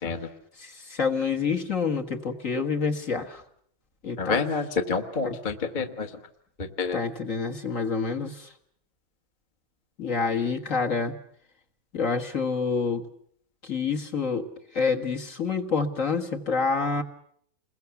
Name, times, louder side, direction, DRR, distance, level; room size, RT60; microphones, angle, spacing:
voice 1, 0.6-3.4 4.0-4.4 5.2-5.4 6.9-8.5 10.0-11.1 11.9-13.0 13.6-14.5 14.7-17.0, left 5 dB, 40° left, 3 dB, 1.9 m, -27 dB
voice 2, 4.2-6.1 6.6-7.0, left 4 dB, 25° left, 5 dB, 1.4 m, -28 dB
29.0 x 21.5 x 7.0 m, 0.67 s
omnidirectional pair, 2.2 m